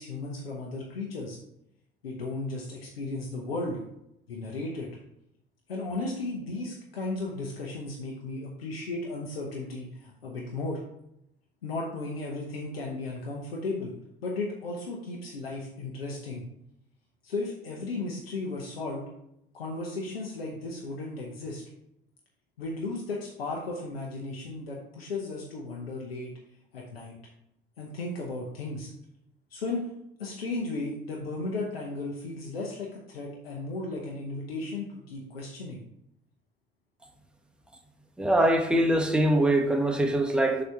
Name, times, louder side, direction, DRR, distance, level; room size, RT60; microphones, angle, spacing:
voice 1, 0.0-1.4 2.0-3.8 4.3-4.9 5.7-10.8 11.6-13.9 14.2-16.4 17.2-19.1 19.5-21.6 22.6-26.3 26.7-27.2 27.8-28.9 29.5-29.9 30.2-35.8, left 2 dB, 80° left, 1.0 m, -35 dB
voice 2, 38.2-40.6, right 1 dB, 5° right, 1.1 m, -23 dB
6.8 x 3.2 x 5.9 m
figure-of-eight pair, 55°, 29 cm